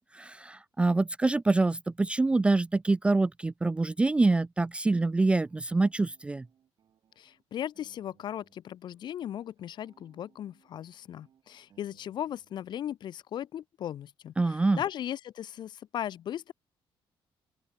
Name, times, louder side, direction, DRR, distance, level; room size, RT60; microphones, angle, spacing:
voice 1, 0.1-6.4 14.4-14.8, right 3 dB, 10° right, 0.3 m, -25 dB
sound 1, 4.7-8.6 8.8-12.7, right 9 dB, 50° right, 6.0 m, -67 dB
voice 2, 7.2-16.5, left 10 dB, 50° left, 0.6 m, -37 dB
open air
cardioid pair, 160°, 9 cm